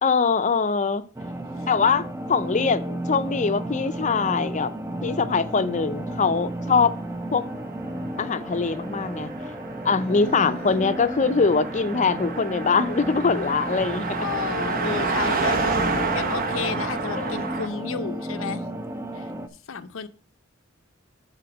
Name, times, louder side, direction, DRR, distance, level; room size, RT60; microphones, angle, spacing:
voice 1, 0.0-1.0 1.7-4.7 5.0-6.9 7.3-7.4 8.2-9.3 9.8-14.3 17.1-17.4, left 5 dB, 35° left, 0.6 m, -23 dB
sound 1, 1.1-19.5, right 1 dB, 15° right, 0.6 m, -33 dB
Car passing by, 7.5-17.7, right 4 dB, 45° right, 0.9 m, -30 dB
voice 2, 10.0-10.8 14.2-15.7 16.1-18.6 19.1-19.3 19.7-20.1, left 6 dB, 80° left, 0.6 m, -32 dB
7.8 x 4.3 x 6.0 m
head